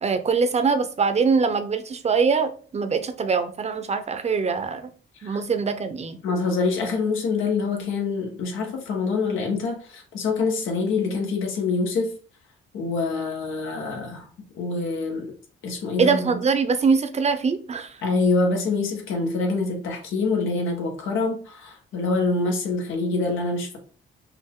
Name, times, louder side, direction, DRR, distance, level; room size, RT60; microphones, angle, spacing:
voice 1, 0.0-4.9 5.2-6.2 16.0-18.0, right 5 dB, 35° right, 0.8 m, -23 dB
voice 2, 6.2-12.1 12.7-14.3 14.6-15.3 15.6-16.2 18.0-23.8, left 3 dB, 85° left, 1.6 m, -25 dB
5.5 x 2.5 x 3.8 m
cardioid pair, 90°, 20 cm